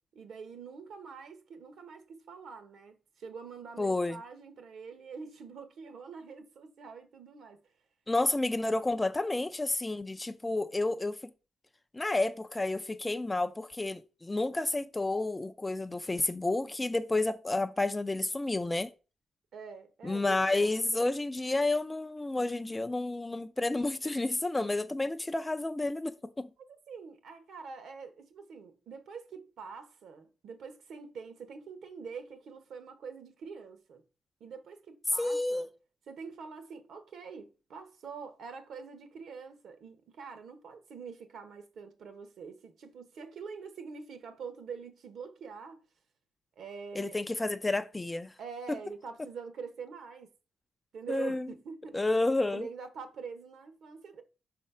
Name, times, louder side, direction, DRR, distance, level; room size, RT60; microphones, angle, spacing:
voice 1, 0.1-7.6 19.5-21.1 26.7-34.0 34.4-35.7 36.1-45.8 46.6-47.2 48.4-50.3 50.9-52.0 52.5-54.2, right 5 dB, 65° right, 1.2 m, -45 dB
voice 2, 3.8-4.2 8.1-11.3 11.9-18.9 20.0-26.5 35.2-35.7 47.0-48.3 48.7-48.8 51.1-51.5 51.9-52.7, left 2 dB, 15° left, 0.4 m, -30 dB
5.6 x 4.3 x 5.6 m
cardioid pair, 150°, 0 cm